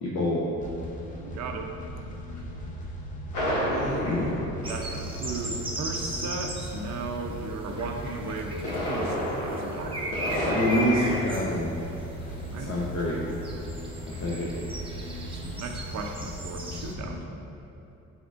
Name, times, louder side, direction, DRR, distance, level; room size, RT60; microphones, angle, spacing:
voice 1, 0.0-0.5 3.7-4.4 10.5-11.7 12.7-13.2 14.1-14.5, left 1 dB, 60° left, -6 dB, 0.7 m, -27 dB
sound 1, 0.6-17.2, equal, 25° left, 0.6 m, -38 dB
voice 2, 1.1-1.7 4.7-10.5 12.5-12.7 15.2-17.4, right 3 dB, 65° right, 3 dB, 0.6 m, -36 dB
sound 2, 3.3-5.4 8.4-11.2, equal, 85° left, 1.3 m, -30 dB
sound 3, 4.6-16.9, right 1 dB, 20° right, 0.6 m, -38 dB
6.2 x 3.5 x 2.4 m, 2.9 s
cardioid pair, 90°, 30 cm